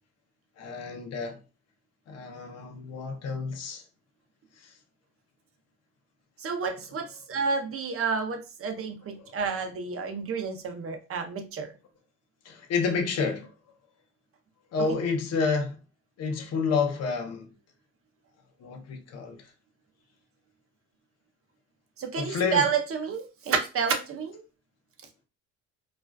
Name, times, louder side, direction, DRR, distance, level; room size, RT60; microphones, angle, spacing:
voice 1, 0.6-1.4 2.1-3.8 4.6-4.7 12.4-13.5 14.7-15.8 16.2-17.5 18.6-19.4 22.2-22.6, left 5 dB, 55° left, 0.6 m, -29 dB
voice 2, 6.4-11.7 22.0-24.4, right 5 dB, 50° right, 0.6 m, -30 dB
2.4 x 2.2 x 2.2 m
cardioid pair, 90°, 30 cm